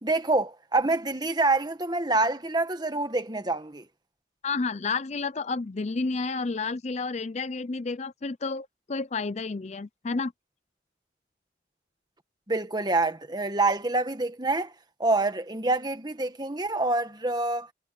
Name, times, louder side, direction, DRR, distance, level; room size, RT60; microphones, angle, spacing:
voice 1, 0.0-3.8 12.5-14.7 15.0-17.7, right 2 dB, 20° right, 1.5 m, -26 dB
voice 2, 4.4-10.3, left 4 dB, 35° left, 0.5 m, -31 dB
head